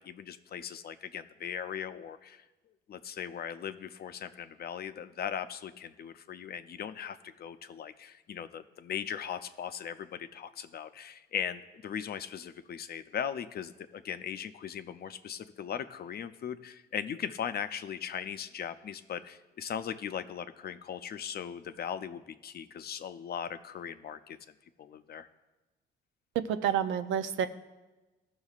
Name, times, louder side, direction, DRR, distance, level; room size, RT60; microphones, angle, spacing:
voice 1, 0.0-2.4 2.9-24.4 24.8-25.3, left 8 dB, 50° left, 11 dB, 0.5 m, -39 dB
voice 2, 26.4-27.5, right 9 dB, 85° right, 10 dB, 0.6 m, -29 dB
15.5 x 6.2 x 2.4 m, 1.1 s
cardioid pair, 90°, 20 cm